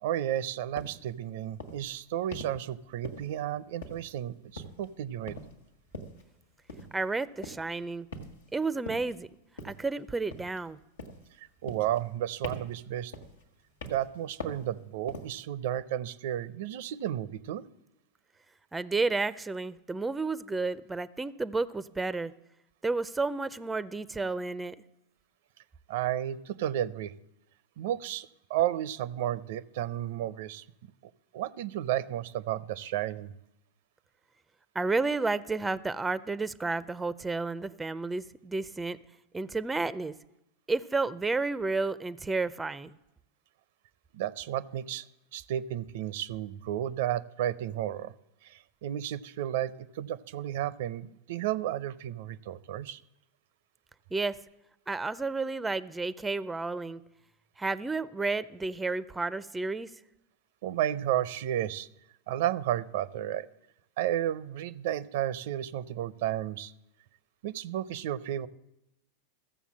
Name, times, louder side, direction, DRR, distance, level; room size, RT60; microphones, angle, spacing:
voice 1, 0.0-5.4 11.6-13.1 13.8-17.6 25.9-27.1 27.8-30.6 31.3-33.3 44.1-45.0 45.3-48.1 48.4-53.0 60.6-61.9 62.3-63.5 64.0-66.7 67.4-68.5, right 12 dB, 70° right, 17 dB, 0.5 m, -32 dB
sound 1, 0.8-1.0 1.6-1.9 2.3-2.6 3.0-3.5 3.8-4.2 4.6-4.9 5.3-5.6 5.9-6.2 6.7-7.0 7.4-7.7 8.1-8.5 8.9-9.1 9.6-9.9 10.3-10.7 11.0-11.3 11.7-12.2 12.4-12.8 13.1-13.4 13.8-14.1 14.4-14.7 15.1-15.4, left 1 dB, 90° left, 1.7 m, -42 dB
voice 2, 6.9-8.1 8.5-9.3 9.6-10.8 18.7-22.3 22.8-24.8 34.7-39.0 39.3-40.1 40.7-42.9 54.1-54.4 54.9-57.0 57.6-59.9, right 3 dB, 10° right, 17 dB, 0.4 m, -31 dB
14.5 x 7.0 x 7.3 m, 0.87 s
hypercardioid pair, 110°, 0 cm